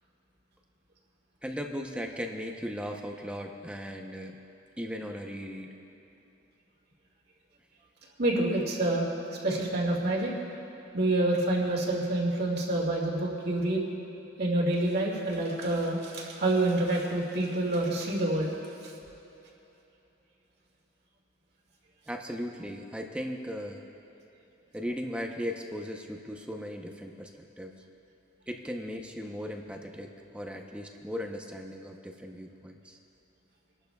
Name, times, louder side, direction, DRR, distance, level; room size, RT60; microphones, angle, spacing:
voice 1, 1.4-4.4 4.8-5.8 22.1-23.8 24.7-27.8 28.5-33.0, equal, 5° right, 2 dB, 0.8 m, -37 dB
voice 2, 8.2-9.1 9.4-10.3 10.9-13.8 14.4-18.5, right 2 dB, 55° right, -3 dB, 2.2 m, -27 dB
27.5 x 12.0 x 2.3 m, 3.0 s
head